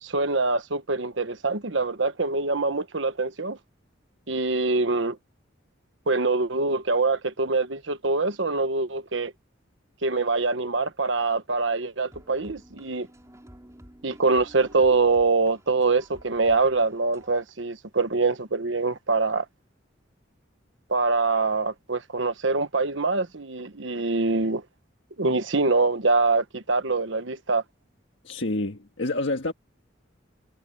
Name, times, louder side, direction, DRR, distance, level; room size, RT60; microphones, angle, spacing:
voice 1, 0.0-3.6 4.3-5.2 6.1-9.3 10.0-13.1 14.0-19.4 20.9-24.6 25.2-27.6, right 3 dB, 70° right, 1.3 m, -24 dB
sound 1, 12.1-17.4, equal, 15° right, 4.4 m, -51 dB
voice 2, 28.2-29.5, left 2 dB, 70° left, 1.6 m, -28 dB
head